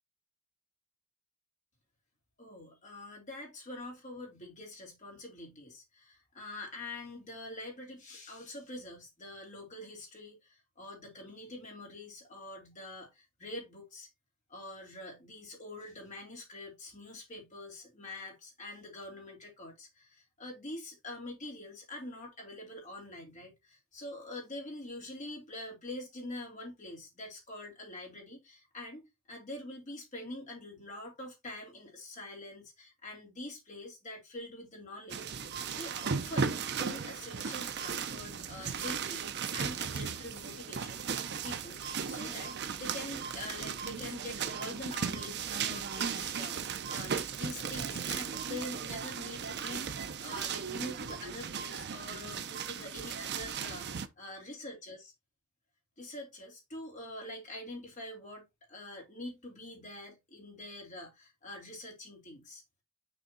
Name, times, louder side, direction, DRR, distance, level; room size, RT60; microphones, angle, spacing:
voice 1, 2.4-14.1 14.5-55.1 56.0-62.6, left 1 dB, 35° left, 2.5 m, -45 dB
sound 1, 35.1-54.1, right 6 dB, 50° right, 0.6 m, -36 dB
6.5 x 3.5 x 4.2 m
head